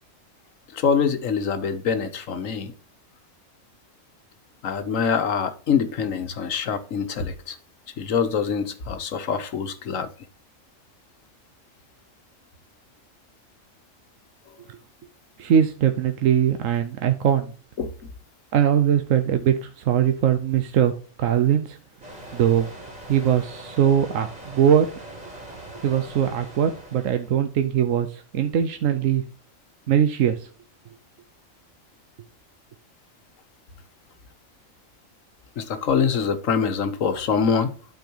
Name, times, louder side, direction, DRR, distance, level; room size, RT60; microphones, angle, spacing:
voice 1, 0.7-2.7 4.6-7.6 8.0-10.1 17.8-17.9 35.6-37.7, left 6 dB, 80° left, 1.4 m, -24 dB
voice 2, 15.4-17.5 18.5-20.9 21.2-21.8 22.3-22.7 23.1-24.9 25.8-29.2 29.9-30.5, right 9 dB, 90° right, 1.1 m, -21 dB
sound 1, 22.0-27.4, right 1 dB, 30° right, 3.0 m, -41 dB
12.0 x 4.6 x 2.9 m
omnidirectional pair, 1.3 m